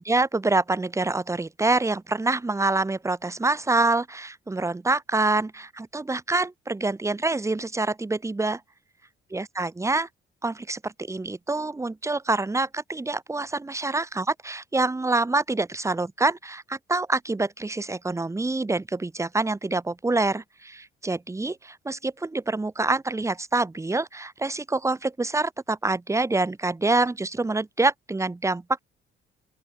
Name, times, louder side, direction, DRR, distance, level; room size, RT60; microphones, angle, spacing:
voice 1, 0.0-8.6 9.3-10.1 10.4-28.8, right 2 dB, 15° right, 1.1 m, -26 dB
open air
cardioid pair, 90°, 20 cm